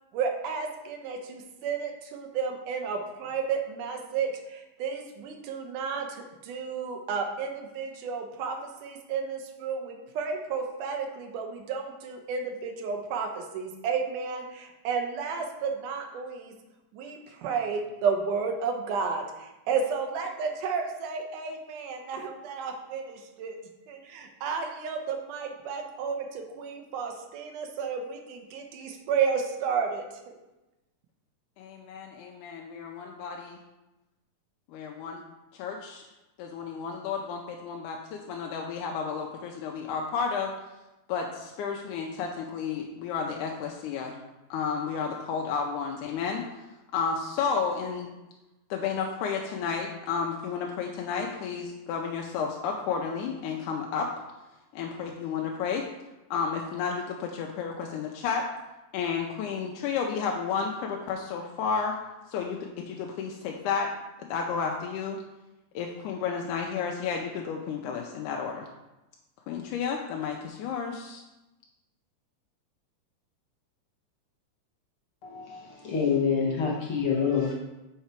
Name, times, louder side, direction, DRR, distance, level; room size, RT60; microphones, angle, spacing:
voice 1, 0.1-16.5 16.9-23.6 23.9-30.4, right 5 dB, 90° right, 4 dB, 2.4 m, -32 dB
voice 2, 31.6-33.6 34.7-35.2 35.6-36.0 36.4-40.5 41.1-44.2 44.5-46.4 46.9-48.1 48.7-54.1 54.7-55.8 56.3-58.5 58.9-61.9 62.3-62.6 62.9-63.9 64.3-65.2 65.8-68.7 69.5-71.2, left 6 dB, 90° left, 1 dB, 2.1 m, -32 dB
voice 3, 75.2-77.5, left 6 dB, 60° left, -3 dB, 1.5 m, -27 dB
5.6 x 5.6 x 4.4 m, 1.0 s
omnidirectional pair, 3.5 m